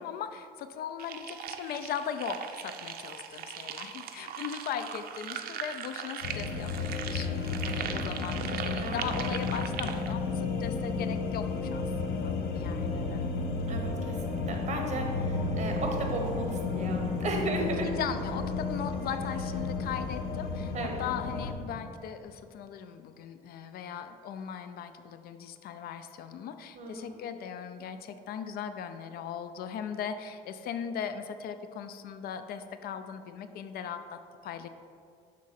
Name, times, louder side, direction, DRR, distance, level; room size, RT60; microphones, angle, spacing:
voice 1, 0.0-13.3 17.8-20.7 21.0-34.7, left 8 dB, 65° left, 9 dB, 0.4 m, -38 dB
sound 1, 1.0-10.1, right 8 dB, 65° right, 0.5 m, -39 dB
sound 2, 6.2-21.5, left 4 dB, 80° left, 0.8 m, -32 dB
voice 2, 13.7-17.9 20.7-21.0 26.7-27.2, right 3 dB, 45° right, 2 dB, 1.1 m, -35 dB
6.5 x 3.6 x 5.8 m, 2.3 s
cardioid pair, 110°, 17 cm